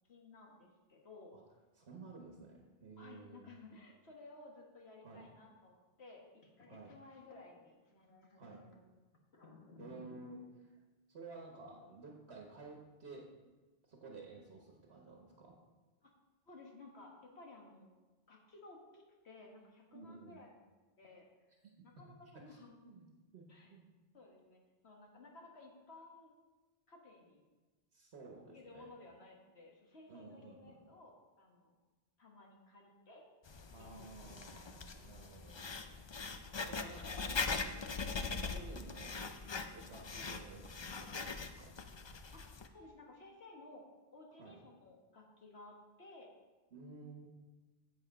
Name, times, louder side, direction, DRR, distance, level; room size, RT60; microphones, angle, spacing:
voice 1, 0.1-1.3 3.0-8.8 9.3-10.3 16.0-16.1 16.5-17.9 18.3-20.5 21.0-21.2 21.8-22.7 23.5-23.7 24.1-26.3 26.9-27.4 28.5-31.8 32.2-33.2 33.8-34.4 42.3-43.8 44.1-46.3, left 2 dB, 75° left, 0 dB, 1.8 m, -57 dB
voice 2, 1.8-3.4 5.0-5.3 6.7-7.0 8.4-8.7 9.8-10.4 11.1-13.4 13.9-15.6 19.9-20.4 22.3-22.6 22.8-23.0 23.3-23.9 27.9-28.9 30.1-30.8 33.7-35.7 36.6-37.4 38.4-39.2 39.7-42.1 44.4-44.7 46.7-47.3, right 3 dB, 75° right, 0 dB, 1.3 m, -53 dB
Writing, 33.5-42.7, left 4 dB, 40° left, 0.4 m, -42 dB
8.0 x 8.0 x 4.9 m, 1.2 s
omnidirectional pair, 1.1 m